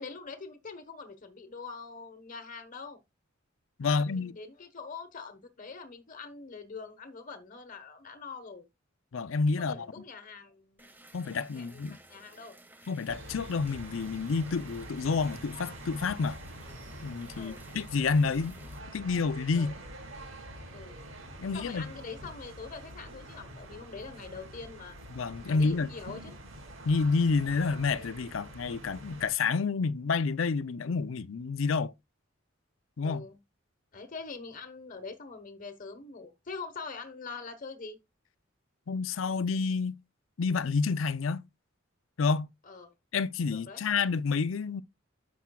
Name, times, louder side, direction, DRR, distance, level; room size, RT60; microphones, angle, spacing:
voice 1, 0.0-3.0 3.8-8.7 9.6-10.9 11.5-12.6 17.3-17.6 19.5-19.7 20.7-21.0 21.5-24.9 25.5-26.4 33.0-33.4 33.9-38.0 42.6-42.9 43.5-43.8, left 4 dB, 45° left, 1.2 m, -44 dB
voice 2, 3.8-4.3 9.1-9.9 11.1-12.0 12.9-16.4 17.0-18.6 18.9-19.7 21.4-21.8 25.1-25.9 26.8-31.9 33.0-33.2 38.9-40.0 40.4-41.4 42.2-42.5 43.1-44.8, left 4 dB, 75° left, 0.5 m, -29 dB
sound 1, 10.8-18.8, right 1 dB, 10° right, 1.4 m, -55 dB
sound 2, 13.1-29.3, right 1 dB, 80° right, 5.0 m, -46 dB
10.0 x 7.1 x 2.3 m
head